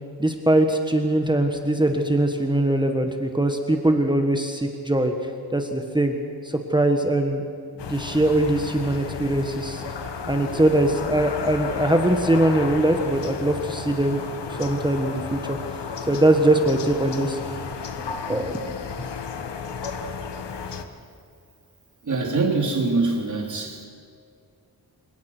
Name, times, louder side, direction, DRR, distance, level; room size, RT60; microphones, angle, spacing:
voice 1, 0.2-6.2 6.4-7.4 7.9-9.8 10.3-14.2 14.5-15.6 16.1-17.4 18.0-18.6 19.0-19.1 19.4-19.5, right 1 dB, 10° right, 4 dB, 1.5 m, -22 dB
sound 1, 7.8-20.8, left 5 dB, 85° left, 1.5 m, -33 dB
voice 2, 22.0-23.8, right 3 dB, 45° right, 0 dB, 4.0 m, -24 dB
28.0 x 17.5 x 6.1 m, 2.2 s
wide cardioid pair, 110°, 41 cm